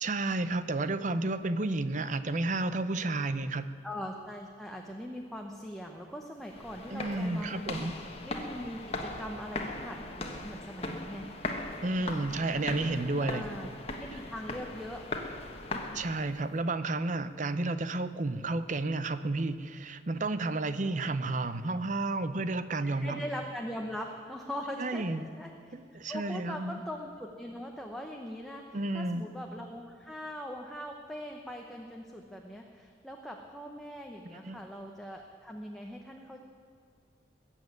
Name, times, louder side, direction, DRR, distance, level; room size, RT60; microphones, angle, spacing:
voice 1, 0.0-3.7 6.9-7.9 11.8-13.5 15.9-23.2 24.8-25.3 25.7-26.8 28.7-29.3 34.3-34.6, right 2 dB, 40° right, 12 dB, 0.7 m, -31 dB
voice 2, 3.8-7.9 8.2-11.3 13.2-15.1 22.8-25.1 25.4-25.5 26.1-36.4, equal, ahead, 1 dB, 0.9 m, -41 dB
sound 1, 6.4-16.5, left 2 dB, 35° left, 1.3 m, -39 dB
20.5 x 7.4 x 9.3 m, 2.3 s
head